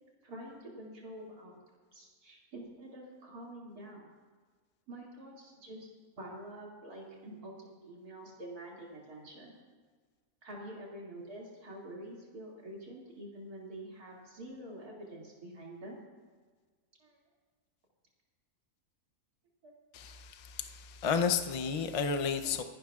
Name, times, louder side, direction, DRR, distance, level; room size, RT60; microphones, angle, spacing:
voice 1, 0.2-1.6 1.9-4.1 4.9-5.9 6.2-9.5 10.4-16.0 17.0-17.2 19.6-19.7, right 1 dB, 80° right, -3 dB, 3.0 m, -47 dB
voice 2, 19.9-22.6, left 6 dB, 60° left, 6 dB, 0.3 m, -32 dB
26.5 x 11.5 x 2.4 m, 1.5 s
omnidirectional pair, 1.6 m